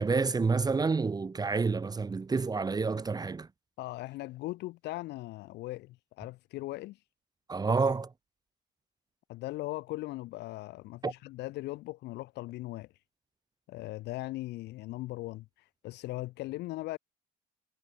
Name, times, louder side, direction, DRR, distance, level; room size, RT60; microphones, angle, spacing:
voice 1, 0.0-3.5 7.5-8.1 11.0-11.1, right 4 dB, 25° right, 1.7 m, -28 dB
voice 2, 3.8-7.0 9.3-12.9 13.7-17.0, left 18 dB, 85° left, 4.3 m, -39 dB
cardioid pair, 110°, 17 cm